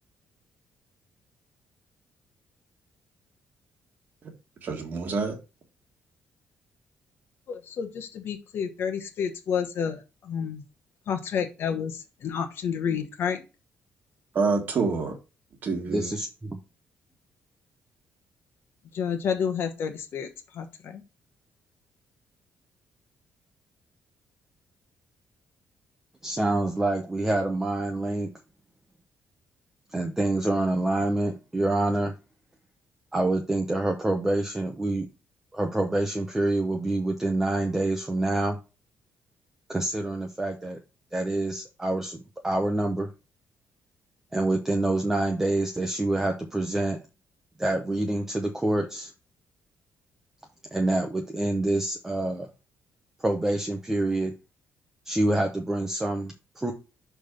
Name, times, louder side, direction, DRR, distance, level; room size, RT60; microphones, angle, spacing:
voice 1, 4.6-5.3 14.3-15.1 15.6-16.1, right 4 dB, 40° right, 1.6 m, -27 dB
voice 2, 7.5-10.6 11.1-13.4 18.9-21.0, left 7 dB, 55° left, 1.1 m, -30 dB
voice 3, 15.9-16.6 26.2-28.3 29.9-32.1 33.1-35.1 35.5-38.6 39.7-40.8 41.1-43.1 44.3-47.0 47.6-49.1 50.7-52.5 53.2-54.3 55.1-56.7, right 2 dB, 10° right, 0.7 m, -26 dB
6.1 x 3.5 x 5.0 m
cardioid pair, 170°, 5 cm